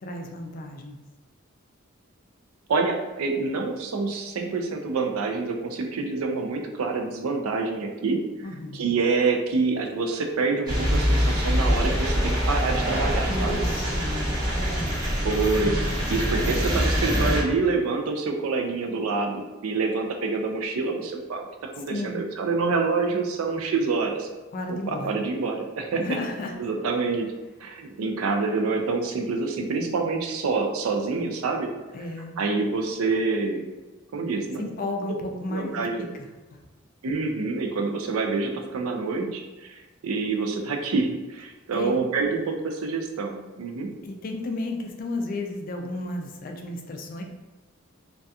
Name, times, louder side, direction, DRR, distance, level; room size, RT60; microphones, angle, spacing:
voice 1, 0.0-1.0 8.4-8.8 13.3-14.3 14.5-15.0 21.9-22.2 24.5-25.2 26.0-26.6 31.9-32.4 34.6-36.7 41.7-41.9 44.0-47.2, left 2 dB, 40° left, 3 dB, 0.3 m, -33 dB
voice 2, 2.7-8.2 8.7-13.6 15.2-24.3 24.7-26.0 26.6-27.3 27.6-31.7 32.4-33.7 34.1-34.7 35.5-36.1 37.0-43.9, right 4 dB, 90° right, 3 dB, 0.4 m, -27 dB
sound 1, 10.7-17.4, equal, 20° right, 0.8 m, -24 dB
2.6 x 2.3 x 2.3 m, 1.2 s
head